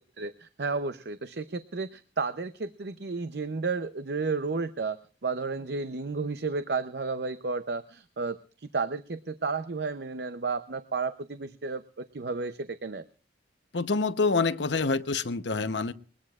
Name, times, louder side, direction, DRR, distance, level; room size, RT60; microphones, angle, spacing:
voice 1, 0.2-13.0, right 4 dB, 65° right, 12 dB, 0.6 m, -32 dB
voice 2, 13.7-15.9, left 4 dB, 85° left, 11 dB, 0.9 m, -26 dB
21.0 x 20.5 x 2.4 m, 0.38 s
head